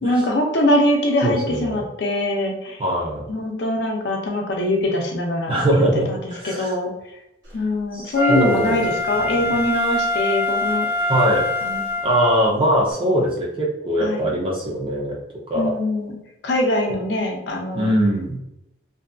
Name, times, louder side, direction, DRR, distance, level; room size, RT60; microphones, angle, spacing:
voice 1, 0.0-2.8 3.3-6.2 6.4-6.9 7.5-10.9 11.6-11.8 14.0-14.3 15.5-16.2 16.4-17.9, left 1 dB, 65° left, 1 dB, 0.5 m, -23 dB
voice 2, 1.2-1.8 2.8-3.3 5.5-6.7 7.9-8.8 9.1-9.5 11.1-11.5 12.0-15.2 15.5-15.7 17.7-18.4, equal, 25° right, -3 dB, 0.5 m, -21 dB
Wind instrument woodwind instrument, 8.1-12.4 12.9-13.0, left 1 dB, 65° right, 0.9 m, -24 dB
2.6 x 2.4 x 2.2 m, 0.84 s
head